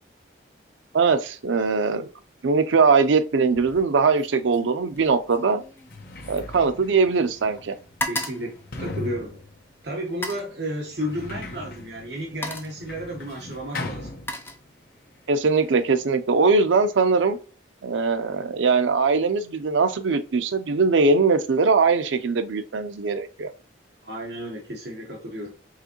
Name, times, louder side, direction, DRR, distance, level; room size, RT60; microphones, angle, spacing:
voice 1, 0.9-2.1 2.4-5.6 6.3-7.7 15.3-17.4 17.8-23.5, right 4 dB, 85° right, 0.5 m, -21 dB
sound 1, 3.5-3.9 4.2-7.3 7.6-9.5 10.1-10.5 11.6-11.8 12.1-12.9 13.7-15.1 15.5-15.9, left 1 dB, 10° left, 0.5 m, -36 dB
Sliding door, 5.0-5.1 5.7-14.8 15.1-15.9, left 2 dB, 55° left, 0.8 m, -39 dB
voice 2, 8.1-9.4 9.8-14.1 24.0-25.5, equal, 65° right, 1.0 m, -32 dB
4.8 x 3.5 x 2.9 m
head